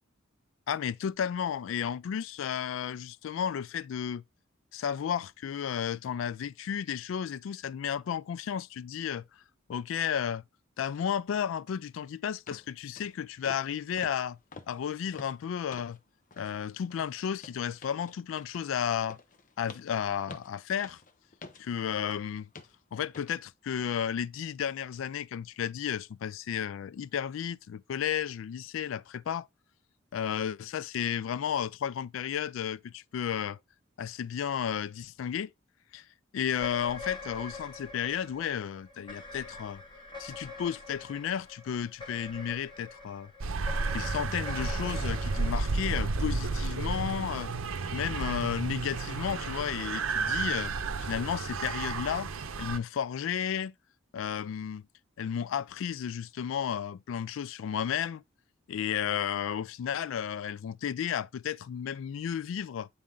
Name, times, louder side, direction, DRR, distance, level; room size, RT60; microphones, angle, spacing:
voice 1, 0.7-4.2 4.7-9.2 9.7-10.4 10.8-14.4 14.7-16.0 16.4-19.2 19.6-21.0 21.6-22.5 22.9-29.5 30.1-33.6 34.0-35.5 35.9-36.0 36.3-39.8 40.2-43.3 43.9-47.5 47.9-50.7 51.0-52.3 52.6-53.7 54.1-54.9 55.2-58.2 58.7-62.9, left 8 dB, 70° left, 0.3 m, -33 dB
sound 1, 11.8-11.9 12.5-12.7 13.0-13.2 13.4-13.7 14.0-16.0 16.3-16.6 16.9-22.2 22.5-22.8 23.1-23.3 23.8-23.9, left 3 dB, 40° left, 0.7 m, -49 dB
sound 2, 36.6-47.0, left 3 dB, 25° left, 1.6 m, -46 dB
sound 3, 43.4-52.8, right 4 dB, 90° right, 0.7 m, -32 dB
8.6 x 4.1 x 3.8 m
head